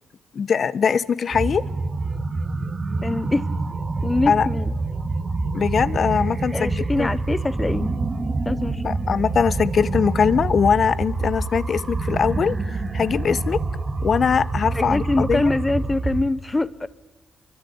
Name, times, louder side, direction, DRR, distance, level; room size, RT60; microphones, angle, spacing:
voice 1, 0.3-1.6 4.3-4.5 5.5-7.1 8.8-13.6 14.0-15.4, left 6 dB, 55° left, 1.1 m, -21 dB
sound 1, 1.3-16.3, right 3 dB, 35° right, 2.2 m, -26 dB
voice 2, 3.0-3.5 4.0-4.7 6.5-7.9 8.4-8.9 14.7-16.9, left 2 dB, 20° left, 0.9 m, -24 dB
25.0 x 23.5 x 8.7 m
cardioid pair, 65°, 0 cm